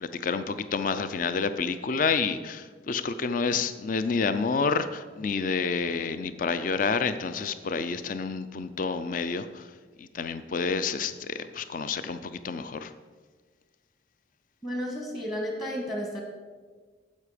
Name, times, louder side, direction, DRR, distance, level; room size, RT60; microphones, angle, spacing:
voice 1, 0.0-9.6 10.0-12.9, left 5 dB, 45° left, 11 dB, 0.4 m, -29 dB
voice 2, 14.6-16.2, equal, 20° left, 0 dB, 1.4 m, -32 dB
9.7 x 7.5 x 5.0 m, 1.4 s
head